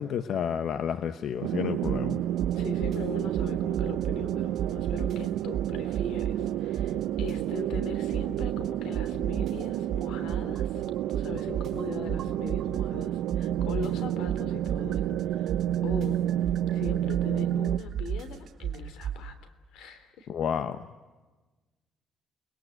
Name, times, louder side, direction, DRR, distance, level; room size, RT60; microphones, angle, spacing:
voice 1, 0.0-2.2 20.3-20.9, left 8 dB, 60° left, 11 dB, 1.0 m, -30 dB
sound 1, 1.4-17.8, right 12 dB, 85° right, 0.7 m, -30 dB
sound 2, 1.8-2.1 2.4-4.3 4.6-6.5 6.7-8.7 8.9-13.0 13.3-19.2, right 9 dB, 55° right, 3.1 m, -33 dB
voice 2, 2.5-10.8 11.1-15.5 15.8-16.2 16.7-20.3, left 5 dB, 90° left, 11 dB, 3.1 m, -41 dB
29.5 x 21.5 x 7.9 m, 1.2 s
cardioid pair, 140°, 0 cm